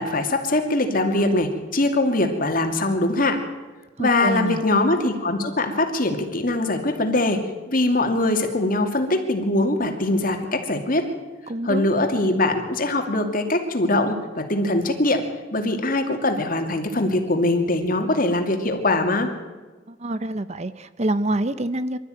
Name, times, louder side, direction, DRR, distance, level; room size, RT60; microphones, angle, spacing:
voice 1, 0.0-3.4 4.0-7.4 7.7-11.1 11.6-15.2 15.5-19.3, left 2 dB, 45° left, 5 dB, 2.6 m, -22 dB
voice 2, 4.0-4.6 11.5-12.0 19.9-22.0, right 1 dB, 35° right, 14 dB, 0.7 m, -26 dB
24.5 x 13.0 x 9.2 m, 1.3 s
head